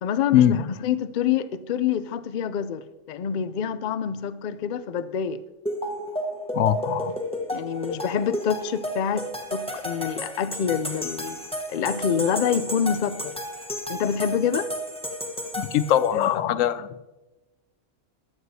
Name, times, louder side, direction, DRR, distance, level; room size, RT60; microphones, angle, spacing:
voice 1, 0.0-5.4 6.8-7.1 7.5-11.4 11.7-13.3 13.9-14.7 16.1-16.8, left 8 dB, 55° left, 0.5 m, -26 dB
sound 1, 5.7-16.3, equal, 5° left, 1.0 m, -32 dB
voice 2, 15.6-16.7, left 10 dB, 90° left, 1.0 m, -21 dB
22.5 x 7.8 x 2.8 m
omnidirectional pair, 1.3 m